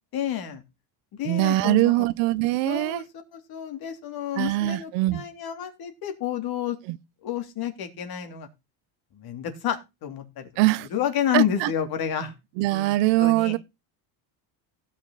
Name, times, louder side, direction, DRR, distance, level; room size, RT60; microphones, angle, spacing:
voice 1, 0.1-0.6 1.2-2.1 2.6-3.0 3.3-6.8 7.2-8.5 9.1-10.5 10.9-12.3 12.6-12.9 13.2-13.5, left 10 dB, 55° left, 3.2 m, -30 dB
voice 2, 1.2-3.0 4.4-5.2 6.9-7.0 10.6-10.9 11.3-11.7 12.6-13.6, right 17 dB, 85° right, 1.0 m, -22 dB
16.5 x 6.4 x 4.1 m
cardioid pair, 130°, 43 cm